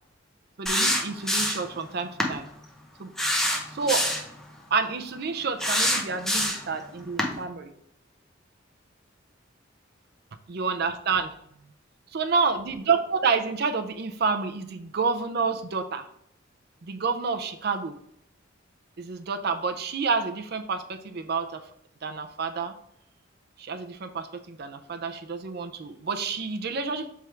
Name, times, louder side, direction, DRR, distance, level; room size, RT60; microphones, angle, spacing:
voice 1, 0.6-2.5 3.0-3.1 3.7-4.1 4.7-7.7 10.5-11.3 12.1-16.1 16.8-18.0 19.0-21.6 22.0-22.7 23.6-27.1, right 5 dB, 55° right, 7 dB, 0.5 m, -29 dB
sound 1, 0.7-1.7 2.2-2.3 3.2-4.3 5.6-6.7 7.2-7.3, equal, ahead, 0.8 m, -25 dB
6.3 x 3.4 x 4.4 m, 0.73 s
head